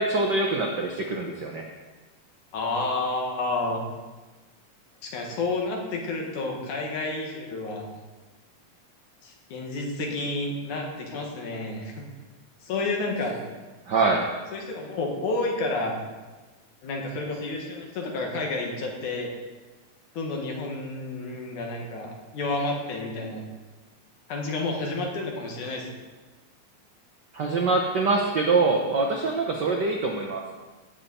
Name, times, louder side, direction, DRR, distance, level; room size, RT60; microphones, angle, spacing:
voice 1, 0.0-1.7 13.9-14.2 27.3-30.4, right 3 dB, 80° right, 1 dB, 0.9 m, -24 dB
voice 2, 2.5-3.8 5.0-7.9 9.2-11.9 12.6-13.4 14.5-16.0 16.8-19.3 20.1-23.4 24.3-25.9, left 2 dB, 80° left, 0 dB, 3.2 m, -30 dB
17.0 x 7.2 x 4.2 m, 1.2 s
omnidirectional pair, 3.4 m